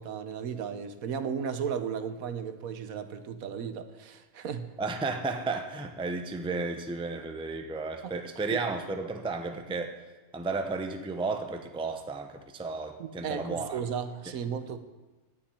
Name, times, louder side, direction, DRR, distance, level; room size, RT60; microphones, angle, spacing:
voice 1, 0.0-4.7 8.0-8.1 13.0-14.8, right 7 dB, 70° right, 10 dB, 1.2 m, -35 dB
voice 2, 4.8-9.9 10.3-13.8, right 3 dB, 5° right, 6 dB, 0.6 m, -33 dB
9.3 x 8.8 x 9.8 m, 1.2 s
omnidirectional pair, 1.6 m